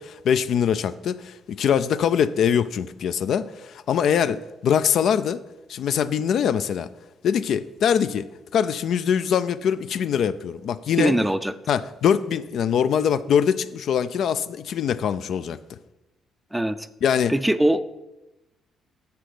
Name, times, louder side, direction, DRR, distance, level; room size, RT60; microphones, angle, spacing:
voice 1, 0.0-5.4 5.7-6.9 7.2-8.3 8.5-11.1 11.7-15.8 17.0-17.3, left 8 dB, 70° left, 13 dB, 0.3 m, -23 dB
voice 2, 11.0-11.5 16.5-16.9 17.3-17.8, right 1 dB, 5° right, 12 dB, 0.4 m, -21 dB
7.0 x 5.9 x 4.9 m, 0.96 s
cardioid pair, 90°, 0 cm